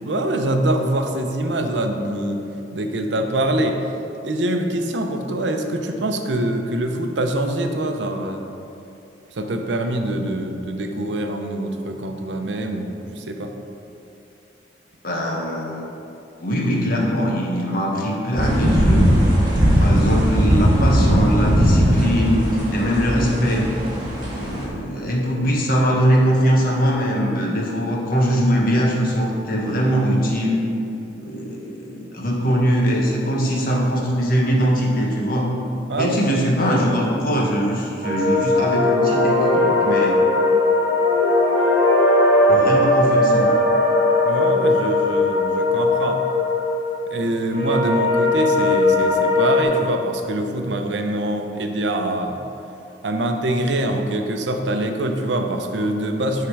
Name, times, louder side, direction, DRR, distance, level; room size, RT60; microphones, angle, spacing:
voice 1, 0.0-2.4 2.7-3.8 4.2-8.4 9.3-13.5 35.9-36.2 44.3-46.2 47.1-52.4 53.0-56.5, right 1 dB, 80° right, 5 dB, 0.7 m, -24 dB
voice 2, 15.0-15.9 16.4-19.1 19.8-23.7 24.3-30.6 31.2-35.5 36.0-40.2 42.5-43.5, equal, 55° left, -2 dB, 1.3 m, -21 dB
sound 1, 18.3-24.7, equal, 25° right, 1.8 m, -18 dB
sound 2, 38.0-49.6, left 2 dB, 75° left, 1.8 m, -18 dB
10.0 x 3.8 x 4.7 m, 2.7 s
head